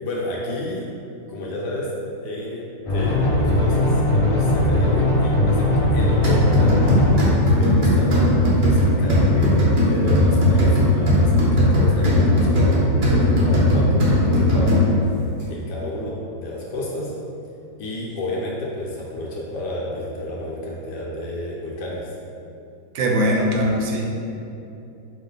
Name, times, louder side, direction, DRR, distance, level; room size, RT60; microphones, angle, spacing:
voice 1, 0.0-0.9 1.3-1.9 2.2-2.6 2.9-7.0 7.5-12.8 13.1-15.1 15.5-17.1 17.8-22.1, left 1 dB, 70° left, -4 dB, 1.2 m, -30 dB
sound 1, 2.9-7.1, left 1 dB, 50° left, 0.4 m, -19 dB
sound 2, 6.2-15.1, left 1 dB, 55° right, 0.5 m, -18 dB
voice 2, 22.9-24.1, equal, 85° right, 0 dB, 1.3 m, -21 dB
4.6 x 2.5 x 3.8 m, 2.8 s
omnidirectional pair, 2.1 m